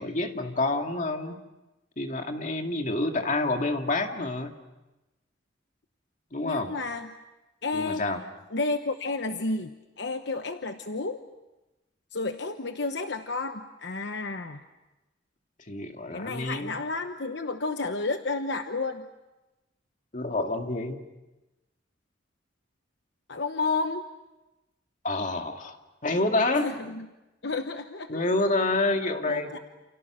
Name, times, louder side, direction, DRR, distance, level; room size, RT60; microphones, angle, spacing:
voice 1, 0.0-1.4 2.0-4.5 6.3-6.7 7.7-8.2 15.7-16.8 20.1-21.0 25.0-25.8 26.0-26.7 28.1-29.6, left 2 dB, 45° left, 4 dB, 2.3 m, -28 dB
voice 2, 6.4-7.1 7.6-8.0 8.5-11.2 12.1-14.6 16.1-19.1 23.3-24.0 26.6-27.1 27.4-28.3 29.3-29.6, left 3 dB, 70° left, 7 dB, 1.0 m, -31 dB
29.0 x 29.0 x 6.3 m, 1.0 s
head